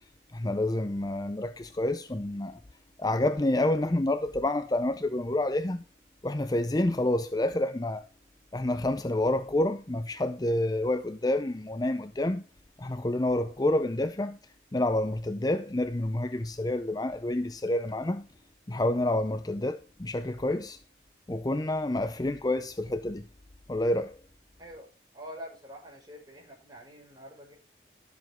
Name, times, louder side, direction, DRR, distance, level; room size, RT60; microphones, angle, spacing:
voice 1, 0.3-2.6 3.0-5.8 6.2-8.0 8.5-12.4 12.8-14.4 14.7-18.3 18.7-20.8 21.3-23.3 23.7-24.2, left 1 dB, 20° left, 0.5 m, -28 dB
voice 2, 25.1-27.5, equal, 25° right, 5.8 m, -45 dB
13.0 x 7.7 x 4.4 m
head